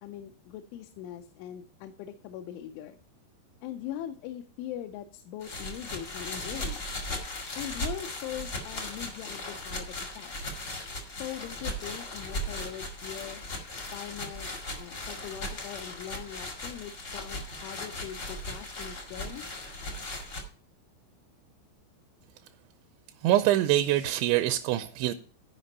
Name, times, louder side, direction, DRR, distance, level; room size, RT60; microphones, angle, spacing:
voice 1, 0.0-3.0 3.6-6.9 7.5-10.3 11.1-13.4 13.9-19.6, left 11 dB, 85° left, 3.1 m, -41 dB
sound 1, 5.4-20.4, left 1 dB, 70° left, 0.9 m, -37 dB
voice 2, 23.2-25.1, right 13 dB, 85° right, 2.8 m, -24 dB
12.5 x 5.2 x 5.3 m
omnidirectional pair, 5.4 m